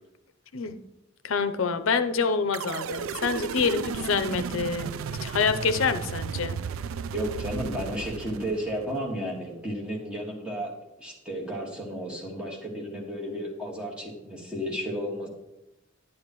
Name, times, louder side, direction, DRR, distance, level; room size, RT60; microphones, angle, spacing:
voice 1, 1.2-4.9 5.2-6.6, left 5 dB, 75° left, 12 dB, 0.6 m, -26 dB
sound 1, 2.5-9.0, right 7 dB, 75° right, 0.3 m, -34 dB
voice 2, 7.1-10.7 11.0-15.3, equal, 5° right, -2 dB, 1.7 m, -33 dB
10.5 x 8.6 x 3.0 m, 0.92 s
head